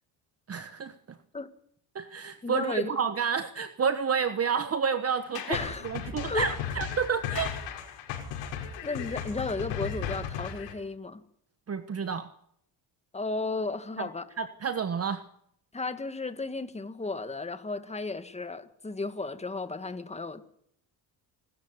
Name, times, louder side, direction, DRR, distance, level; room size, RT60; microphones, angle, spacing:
voice 1, 0.5-1.2 1.9-7.5 11.7-12.3 14.0-14.1 14.4-15.2, right 6 dB, 30° right, 1.3 m, -30 dB
voice 2, 2.4-3.0 5.5-5.9 6.2-6.5 8.8-11.2 13.1-14.2 15.7-20.4, left 3 dB, 15° left, 1.9 m, -34 dB
Sliding door, 5.1-8.4, left 8 dB, 50° left, 3.7 m, -45 dB
sound 1, 5.5-10.7, left 7 dB, 80° left, 5.4 m, -35 dB
27.0 x 13.5 x 9.7 m
cardioid pair, 100°, 45 cm